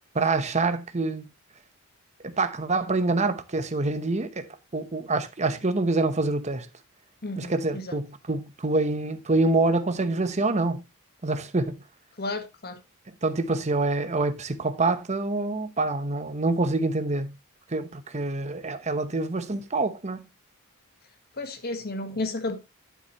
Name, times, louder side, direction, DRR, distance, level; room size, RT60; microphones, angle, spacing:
voice 1, 0.1-1.2 2.2-6.7 7.4-10.8 11.2-11.8 13.2-17.3 17.7-20.3, right 3 dB, 30° right, 0.9 m, -26 dB
voice 2, 7.2-7.8 12.2-12.8 21.4-22.6, left 2 dB, 45° left, 1.4 m, -32 dB
9.4 x 7.8 x 3.0 m
head